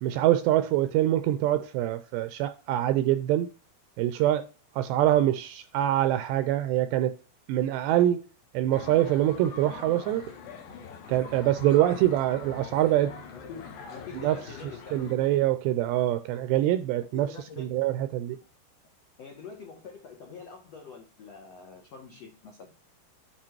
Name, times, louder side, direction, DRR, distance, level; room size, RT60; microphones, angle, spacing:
voice 1, 0.0-3.5 4.0-4.5 4.8-7.1 7.5-8.2 8.5-10.3 11.1-13.1 14.2-14.4 14.9-17.3 17.6-18.4, right 13 dB, 85° right, 2.5 m, -24 dB
sound 1, 8.7-15.2, left 5 dB, 70° left, 3.8 m, -43 dB
voice 2, 13.3-15.2 17.1-17.8 19.2-22.7, left 5 dB, 85° left, 1.4 m, -45 dB
10.0 x 4.5 x 4.6 m
omnidirectional pair, 5.5 m